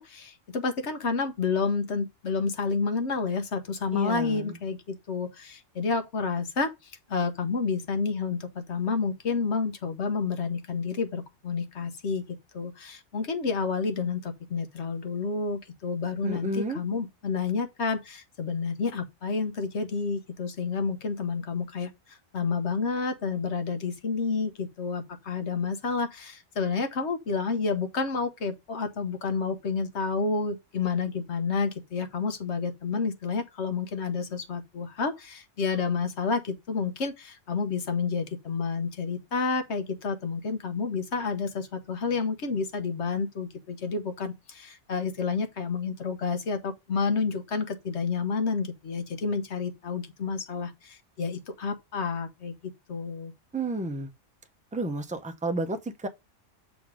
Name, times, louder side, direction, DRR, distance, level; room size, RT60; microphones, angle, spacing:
voice 1, 0.0-12.2 12.5-53.3, left 4 dB, 65° left, 1.2 m, -30 dB
voice 2, 3.9-4.6 16.2-16.8 53.5-54.1 54.7-56.1, right 2 dB, 10° right, 0.6 m, -31 dB
7.1 x 3.9 x 4.8 m
omnidirectional pair, 1.3 m